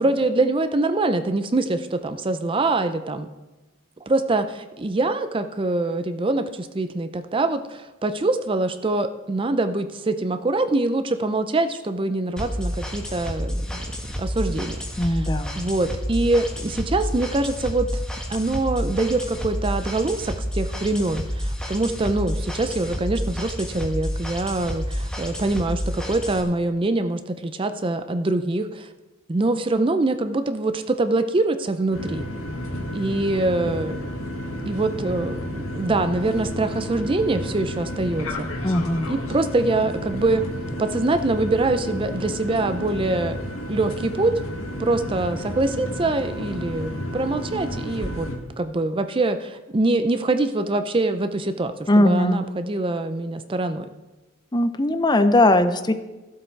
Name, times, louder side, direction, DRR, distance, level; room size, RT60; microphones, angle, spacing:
voice 1, 0.0-3.3 4.1-13.9 14.2-18.0 18.3-28.9 29.3-32.2 32.9-34.0 34.7-38.5 39.1-40.4 40.8-43.4 43.7-44.4 44.8-48.3 48.6-53.9, right 2 dB, 25° right, 9 dB, 0.5 m, -24 dB
sound 1, 12.4-26.4, equal, 5° left, 1.3 m, -29 dB
voice 2, 15.0-15.7 38.6-39.1 51.9-52.5 54.5-55.9, left 1 dB, 20° left, 10 dB, 0.6 m, -19 dB
sound 2, 31.9-48.4, equal, 85° left, 1.8 m, -31 dB
14.5 x 7.7 x 4.6 m, 1.1 s
head